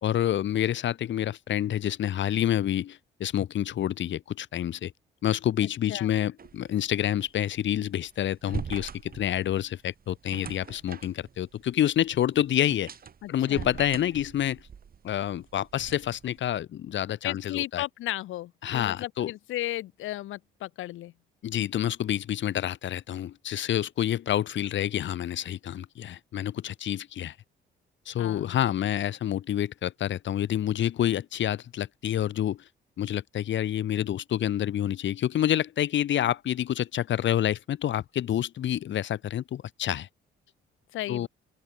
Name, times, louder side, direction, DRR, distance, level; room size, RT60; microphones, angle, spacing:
voice 1, 0.0-4.9 5.2-12.9 13.3-14.6 15.0-17.8 18.6-19.3 21.4-27.3 28.1-32.6 33.0-40.1 41.1-41.3, left 11 dB, 70° left, 2.6 m, -28 dB
sound 1, 6.4-16.4, right 7 dB, 50° right, 6.8 m, -43 dB
voice 2, 13.2-13.7 17.2-21.1 28.2-28.6 40.9-41.3, left 15 dB, 85° left, 2.4 m, -35 dB
cardioid pair, 90°, 20 cm